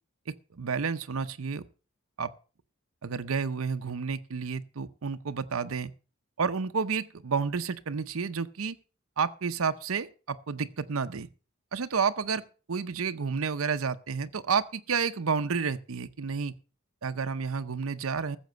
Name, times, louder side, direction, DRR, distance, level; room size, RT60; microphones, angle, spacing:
voice 1, 0.3-1.6 2.2-2.3 3.0-5.9 6.4-8.8 9.2-11.3 11.7-16.5 17.0-18.4, right 5 dB, 80° right, 0.7 m, -30 dB
14.5 x 7.2 x 6.6 m
head